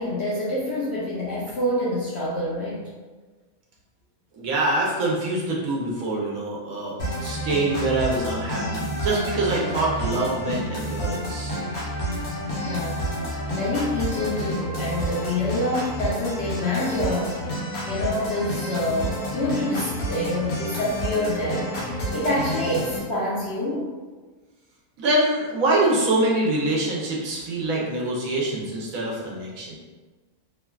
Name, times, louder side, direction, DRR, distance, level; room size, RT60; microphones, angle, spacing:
voice 1, 0.0-2.8 12.1-12.3 12.6-13.1 13.5-17.4 17.9-21.7 22.1-23.9, left 1 dB, 65° left, -6 dB, 0.7 m, -26 dB
voice 2, 4.3-11.6 25.0-29.8, right 2 dB, 75° right, -4 dB, 1.1 m, -25 dB
sound 1, 7.0-23.0, equal, 85° left, 1.2 m, -30 dB
3.1 x 2.3 x 2.3 m, 1.3 s
omnidirectional pair, 1.5 m